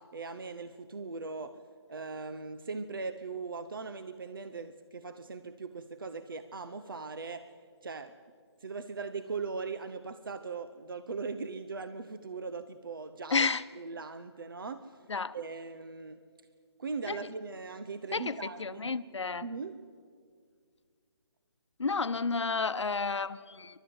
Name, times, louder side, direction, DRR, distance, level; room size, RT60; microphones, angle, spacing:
voice 1, 0.0-1.6 1.9-7.5 7.8-8.1 8.6-13.5 13.7-14.9 15.3-16.2 16.8-18.9 19.4-19.8, right 4 dB, 50° right, 10 dB, 0.8 m, -39 dB
voice 2, 13.3-13.6 15.1-15.3 17.1-17.2 18.1-19.4 21.8-23.8, left 4 dB, 90° left, 13 dB, 1.0 m, -31 dB
29.0 x 12.5 x 7.9 m, 2.1 s
hypercardioid pair, 175°, 14 cm